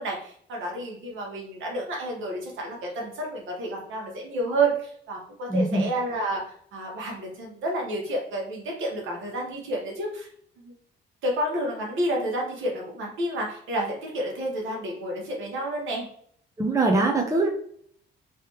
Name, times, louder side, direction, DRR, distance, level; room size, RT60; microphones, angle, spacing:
voice 1, 0.0-10.3 10.6-10.7 11.2-16.1, right 1 dB, 80° right, -1 dB, 1.4 m, -30 dB
voice 2, 5.5-5.8 16.6-17.5, right 2 dB, 15° right, 1 dB, 0.8 m, -22 dB
3.2 x 3.2 x 3.1 m, 0.62 s
cardioid pair, 90°, 20 cm